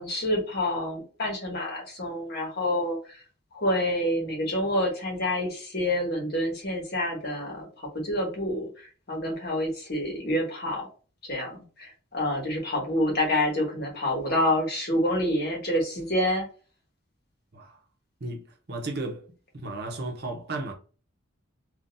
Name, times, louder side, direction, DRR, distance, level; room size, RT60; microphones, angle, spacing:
voice 1, 0.0-3.2 3.5-8.7 9.1-10.9 11.2-16.5, left 1 dB, 50° left, 1.3 m, -28 dB
voice 2, 18.2-19.3 19.5-20.7, right 2 dB, 50° right, 0.8 m, -34 dB
3.8 x 2.5 x 2.6 m
head